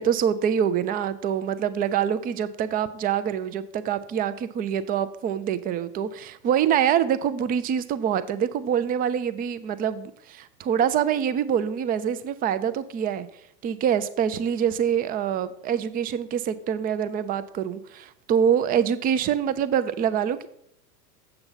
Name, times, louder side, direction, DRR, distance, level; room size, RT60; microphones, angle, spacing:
voice 1, 0.0-13.3 13.6-20.5, right 8 dB, 20° right, 13 dB, 0.4 m, -25 dB
7.7 x 7.0 x 5.5 m, 0.72 s
hypercardioid pair, 95°, 48 cm